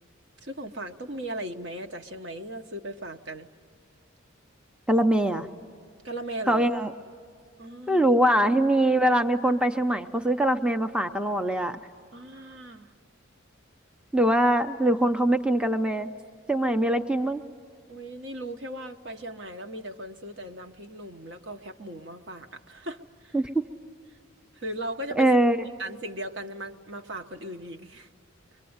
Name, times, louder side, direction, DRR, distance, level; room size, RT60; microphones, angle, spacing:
voice 1, 0.4-3.5 6.0-6.7 7.6-8.1 12.1-12.9 17.9-23.4 24.5-25.3 25.8-28.1, right 1 dB, 60° right, 5 dB, 1.1 m, -37 dB
voice 2, 4.9-5.5 6.5-6.9 7.9-11.8 14.1-16.1 16.5-17.4 23.3-23.5 25.2-25.6, right 1 dB, 5° right, 7 dB, 0.6 m, -22 dB
24.0 x 23.0 x 7.9 m, 2.3 s
head